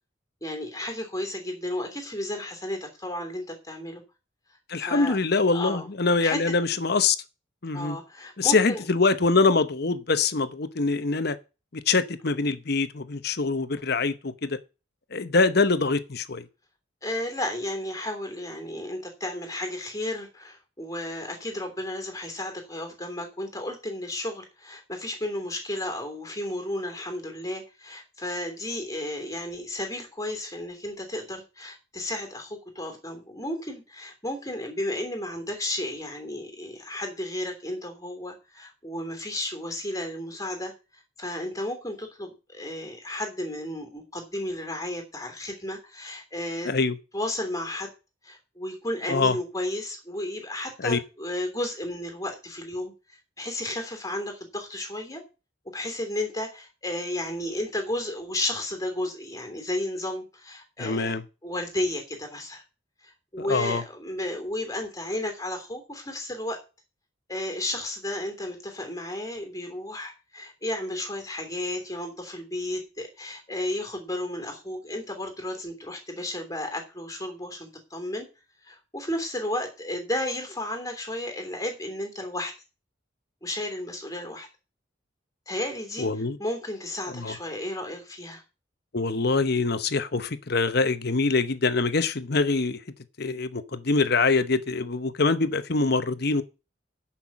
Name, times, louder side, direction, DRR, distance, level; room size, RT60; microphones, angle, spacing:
voice 1, 0.4-4.0 4.8-5.2 5.5-5.9 6.2-6.4 7.7-8.8 17.0-40.7 41.2-46.7 47.1-47.9 48.2-52.9 53.4-55.2 55.7-61.1 61.4-62.6 63.0-66.6 67.3-78.3 78.6-82.5 83.4-84.5 85.5-86.1 86.4-88.4, left 1 dB, 15° left, 3.1 m, -33 dB
voice 2, 4.7-7.2 7.6-8.0 8.4-11.4 11.7-14.6 15.1-16.4 46.7-47.0 49.1-49.4 50.8-51.0 60.8-61.2 63.4-63.8 86.0-86.4 87.1-87.3 88.9-92.8 93.2-96.4, left 3 dB, 55° left, 0.9 m, -24 dB
10.5 x 5.8 x 7.2 m
head